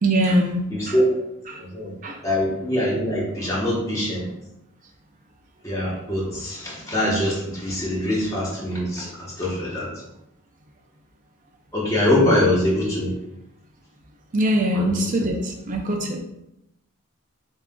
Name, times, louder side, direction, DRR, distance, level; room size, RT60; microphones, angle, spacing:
voice 1, 0.0-1.0 1.5-1.6 2.0-2.2 12.1-12.4 14.3-16.2, right 1 dB, 35° right, 2 dB, 0.4 m, -23 dB
voice 2, 0.7-1.2 1.6-1.9 2.2-4.3 5.6-9.9 11.7-13.1 14.7-15.1, left 1 dB, 15° left, -7 dB, 0.9 m, -23 dB
7.1 x 2.4 x 2.2 m, 0.85 s
head